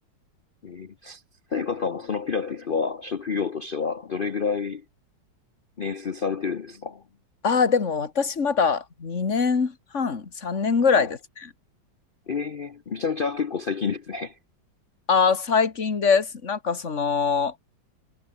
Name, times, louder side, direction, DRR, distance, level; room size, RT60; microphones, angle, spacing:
voice 1, 0.6-1.2 1.5-4.8 5.8-7.0 10.9-11.1 12.3-14.4, left 5 dB, 60° left, 0.5 m, -29 dB
voice 2, 7.4-11.2 15.1-17.5, left 5 dB, 40° left, 2.4 m, -23 dB
omnidirectional pair, 2.0 m